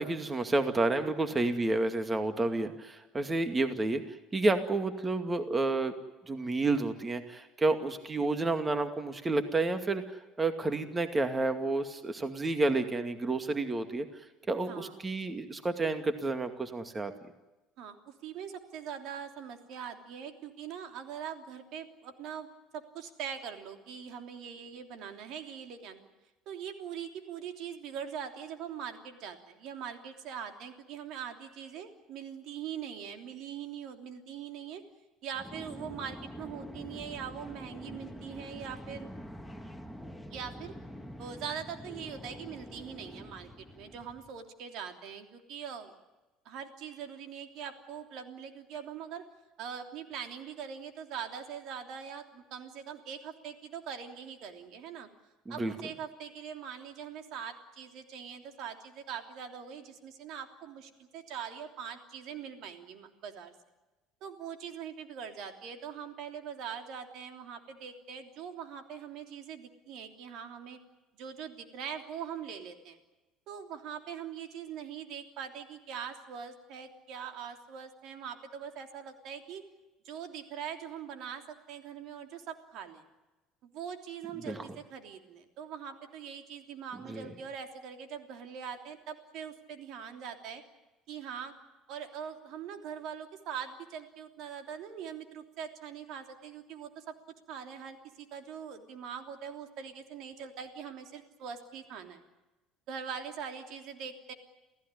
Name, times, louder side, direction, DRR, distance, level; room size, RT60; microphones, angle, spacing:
voice 1, 0.0-6.0 6.3-14.1 14.5-17.1 55.5-55.7 84.5-84.6 87.1-87.3, right 2 dB, 25° right, 8 dB, 2.3 m, -30 dB
voice 2, 14.7-15.0 17.8-22.5 22.7-26.1 26.5-34.8 35.2-39.1 40.3-40.7 41.2-45.9 46.4-49.3 49.6-55.1 55.5-63.5 64.2-70.8 71.2-73.0 73.5-79.7 80.0-83.0 83.6-90.6 91.1-91.5 91.9-97.1 97.5-102.2 102.9-104.3, right 8 dB, 60° right, 6 dB, 3.2 m, -42 dB
sound 1, 35.3-44.3, equal, ahead, 2.3 m, -46 dB
28.5 x 16.5 x 9.9 m, 1.1 s
hypercardioid pair, 60°, 0 cm